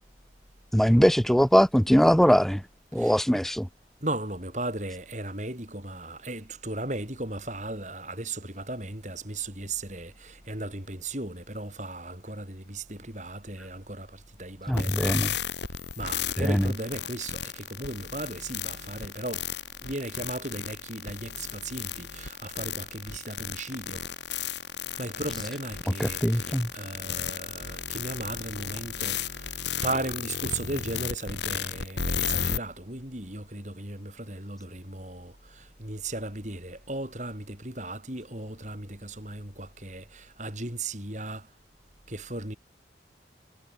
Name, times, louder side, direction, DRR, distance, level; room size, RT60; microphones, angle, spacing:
voice 1, 0.7-2.6 2.9-3.7 14.7-15.3 16.4-16.7 26.0-26.7, equal, ahead, 0.8 m, -21 dB
voice 2, 4.0-15.4 16.0-19.4 19.8-24.0 24.9-41.5 42.1-42.6, right 2 dB, 40° right, 6.5 m, -36 dB
sound 1, 14.7-32.6, left 7 dB, 75° left, 5.2 m, -34 dB
head